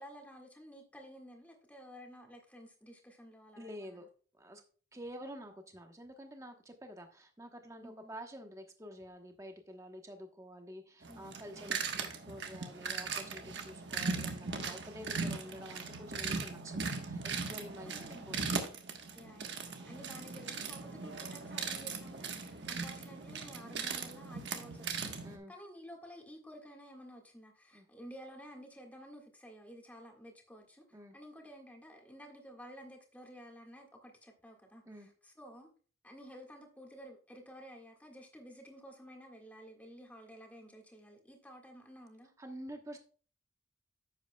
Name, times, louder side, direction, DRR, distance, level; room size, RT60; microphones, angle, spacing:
voice 1, 0.0-4.0 7.8-8.2 11.1-11.6 13.4-13.6 14.6-14.8 17.8-18.3 19.1-19.5 19.9-25.2 25.5-30.8 31.1-35.7 36.0-42.3, equal, 10° left, 1 dB, 1.7 m, -52 dB
voice 2, 3.6-4.1 4.4-4.6 4.9-17.9 18.3-18.6 25.2-25.5 27.7-27.9 30.9-31.1 34.8-35.1 42.4-43.0, equal, 15° right, 5 dB, 1.0 m, -49 dB
sound 1, 11.0-25.4, right 4 dB, 65° right, 1.3 m, -39 dB
10.5 x 8.0 x 2.3 m, 0.40 s
head